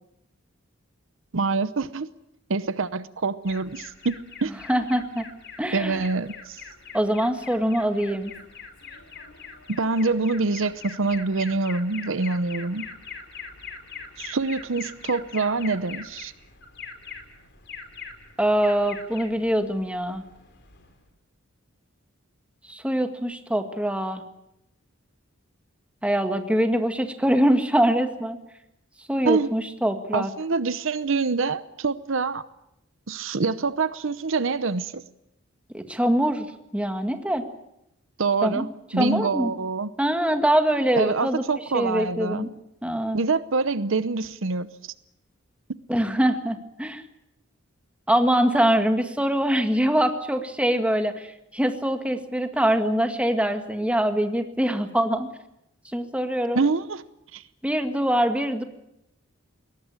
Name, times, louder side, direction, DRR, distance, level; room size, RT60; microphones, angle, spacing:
voice 1, 1.3-2.1 2.5-4.5 5.7-6.6 9.7-12.9 14.2-16.3 29.2-29.5 30.1-32.4 33.1-35.0 38.2-38.7 38.9-39.9 41.0-42.5 43.1-44.7 56.5-57.0 57.3-57.4, right 4 dB, 70° right, 14 dB, 0.8 m, -25 dB
Alarm, 3.4-21.1, left 6 dB, 55° left, 4.4 m, -42 dB
voice 2, 4.7-5.2 5.6-6.0 6.9-8.3 18.4-20.2 22.7-24.2 26.0-28.4 29.1-30.3 35.7-36.5 36.7-37.4 38.4-38.7 39.0-39.5 40.0-41.4 41.7-42.5 42.8-43.2 45.9-47.0 48.1-55.3 55.9-56.7 57.6-58.6, right 1 dB, 5° right, 6 dB, 1.9 m, -23 dB
22.0 x 18.5 x 8.9 m, 0.85 s
head